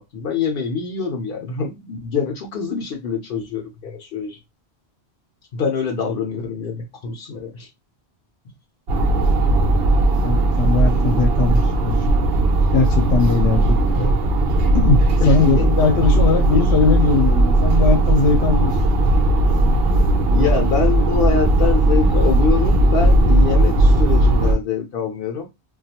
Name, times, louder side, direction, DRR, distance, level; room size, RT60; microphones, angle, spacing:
voice 1, 0.0-4.4 5.5-7.7 14.0-14.2 15.2-15.7 15.9-16.1 16.5-16.6 20.3-25.5, left 5 dB, 65° left, 0.7 m, -25 dB
sound 1, 8.9-24.5, right 2 dB, 70° right, 0.7 m, -17 dB
voice 2, 10.2-12.1 12.7-13.9 14.7-18.7, left 4 dB, 90° left, 0.9 m, -20 dB
2.3 x 2.3 x 2.8 m
omnidirectional pair, 1.1 m